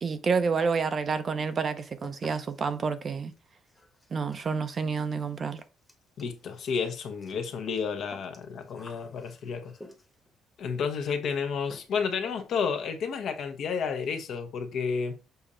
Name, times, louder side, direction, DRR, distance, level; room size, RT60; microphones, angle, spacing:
voice 1, 0.0-3.3 4.1-5.6, right 5 dB, 35° right, 0.6 m, -29 dB
sound 1, 0.6-1.1 1.4-10.3 11.3-11.4 11.7-12.2 12.5-12.6 12.9-13.0 13.3-13.5 13.8-14.3, left 1 dB, 10° left, 1.1 m, -53 dB
voice 2, 6.2-9.7 10.6-15.2, left 6 dB, 55° left, 1.1 m, -31 dB
6.9 x 2.8 x 4.9 m
cardioid pair, 145°, 0 cm